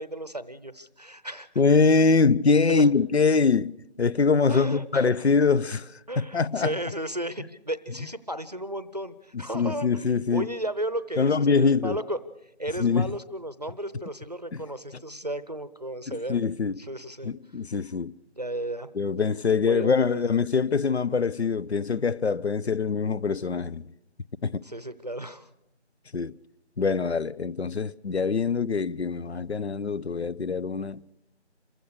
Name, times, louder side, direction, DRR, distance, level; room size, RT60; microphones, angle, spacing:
voice 1, 0.0-1.5 2.7-2.9 4.5-5.2 6.1-12.2 12.6-16.4 16.8-17.3 18.4-18.9 19.6-20.2 24.6-25.5, right 1 dB, 35° right, 0.7 m, -34 dB
voice 2, 1.6-3.7 4.0-6.8 9.5-10.5 11.2-12.0 12.8-13.1 14.5-14.6 16.1-16.8 17.2-18.1 19.0-23.8 24.4-24.6 26.1-26.3 26.8-31.0, left 4 dB, 70° left, 0.7 m, -24 dB
27.5 x 15.5 x 6.5 m
figure-of-eight pair, 170°, 34 cm